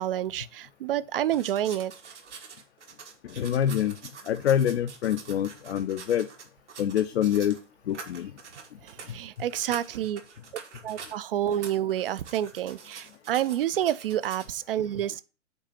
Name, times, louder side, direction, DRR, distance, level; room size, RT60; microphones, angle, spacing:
voice 1, 0.0-1.9 8.8-10.2 10.8-15.2, right 11 dB, 50° right, 0.4 m, -29 dB
sound 1, 1.3-7.6 7.9-11.2 11.5-14.5, right 5 dB, 70° right, 1.5 m, -45 dB
voice 2, 3.2-4.0 4.2-6.3 6.8-7.6 7.9-8.3 9.1-9.2, left 10 dB, 60° left, 0.6 m, -26 dB
5.3 x 4.1 x 5.5 m
figure-of-eight pair, 110°, 36 cm